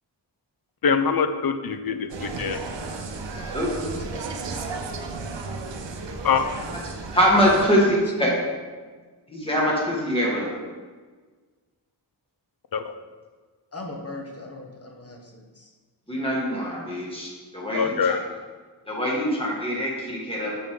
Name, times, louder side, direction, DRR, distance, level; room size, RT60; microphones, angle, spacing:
voice 1, 0.8-2.6 6.2-6.5 12.7-13.0 17.7-18.2, left 6 dB, 55° left, 9 dB, 0.6 m, -24 dB
Insect, 2.1-7.6, right 3 dB, 80° right, 0.7 m, -34 dB
voice 2, 3.8-4.2 7.5-8.4 13.7-15.7 17.8-18.0, left 1 dB, 35° left, 2 dB, 1.0 m, -37 dB
voice 3, 6.9-8.3 9.3-10.5 16.1-18.2 18.9-20.5, equal, 15° left, -5 dB, 1.9 m, -23 dB
6.6 x 5.8 x 3.7 m, 1.4 s
wide cardioid pair, 115°, 43 cm